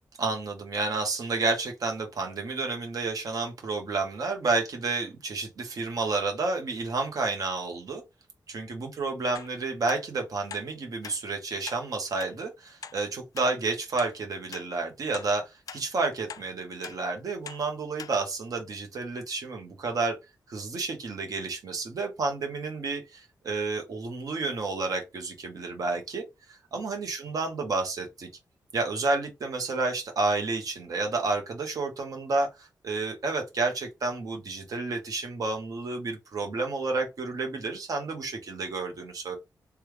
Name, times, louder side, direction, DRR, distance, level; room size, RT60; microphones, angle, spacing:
voice 1, 0.2-8.0 8.5-20.2 20.5-28.3 28.7-39.4, right 3 dB, 60° right, 0.9 m, -30 dB
sound 1, 9.4-9.5 9.9-10.0 10.5-10.7 11.0-11.2 11.7-11.8 12.2-12.3 12.8-13.0 13.4-13.5 14.0-14.1 14.5-14.7 15.1-15.3 15.7-15.8 16.3-16.5 16.8-17.0 17.5-17.6 18.0-18.1 18.6-18.7, left 7 dB, 60° left, 0.3 m, -41 dB
3.3 x 2.3 x 3.2 m
wide cardioid pair, 180°, 7 cm